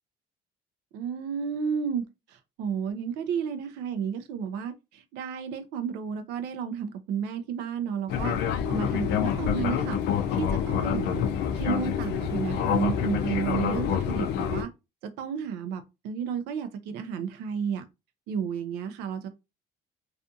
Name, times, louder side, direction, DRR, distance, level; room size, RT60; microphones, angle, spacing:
voice 1, 0.9-10.0 10.3-11.2 11.5-14.7 15.0-17.8 18.3-19.3, right 7 dB, 90° right, 0.4 m, -32 dB
Fixed-wing aircraft airplane, 8.1-14.6, left 8 dB, 80° left, 0.4 m, -27 dB
2.4 x 2.4 x 2.5 m
cardioid pair, 110°, 17 cm